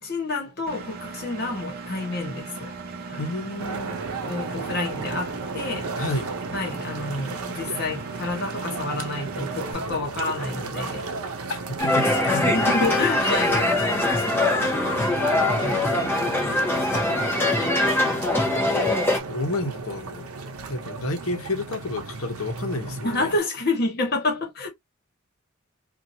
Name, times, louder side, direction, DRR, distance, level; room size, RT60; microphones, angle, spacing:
voice 1, 0.0-2.7 3.1-3.3 4.3-5.9 6.5-11.0 12.3-15.3 15.6-17.3 18.0-18.3 23.0-24.7, left 2 dB, 45° left, 1.3 m, -29 dB
Engine, 0.7-9.7, right 4 dB, 45° right, 0.6 m, -38 dB
voice 2, 3.2-4.0 6.0-6.3 11.5-11.6 11.8-12.9 13.2-13.3 18.5-20.3 20.7-23.3, left 2 dB, 75° left, 0.8 m, -30 dB
sound 1, 3.6-23.4, right 4 dB, 80° right, 0.7 m, -35 dB
sound 2, 11.8-19.2, left 2 dB, 10° left, 0.6 m, -22 dB
2.7 x 2.4 x 2.7 m
head